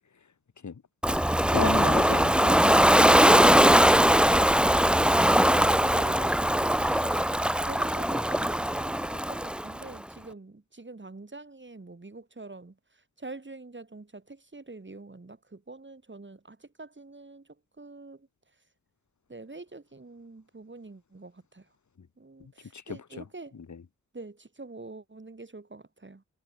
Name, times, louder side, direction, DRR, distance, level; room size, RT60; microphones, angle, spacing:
Ocean, 1.0-9.9, equal, 5° right, 0.7 m, -21 dB
voice 1, 1.5-3.8 22.0-22.1 22.7-23.2 23.7-23.8, left 6 dB, 60° left, 2.0 m, -35 dB
voice 2, 4.8-7.2 7.6-18.3 18.6-18.7 19.3-21.7 22.2-23.6 24.1-26.2, right 3 dB, 35° right, 3.8 m, -45 dB
cardioid pair, 45°, 32 cm